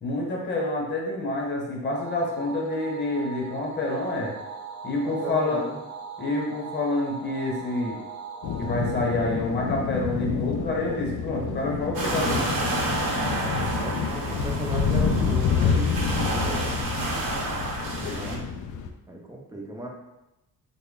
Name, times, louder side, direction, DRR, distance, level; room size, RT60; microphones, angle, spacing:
voice 1, 0.0-4.4 4.8-5.7 6.2-8.0 8.6-12.5 17.4-18.4, left 2 dB, 25° left, -2 dB, 1.0 m, -28 dB
sound 1, 1.9-10.5, right 4 dB, 85° right, 0.6 m, -41 dB
voice 2, 5.0-5.8 13.3-16.8 19.1-19.9, right 1 dB, 10° right, -1 dB, 0.5 m, -36 dB
sound 2, 8.4-18.9, left 6 dB, 55° left, 0.4 m, -28 dB
sound 3, 11.9-18.4, right 2 dB, 65° right, 0.9 m, -30 dB
3.2 x 2.2 x 3.7 m, 0.95 s
cardioid pair, 100°, 39 cm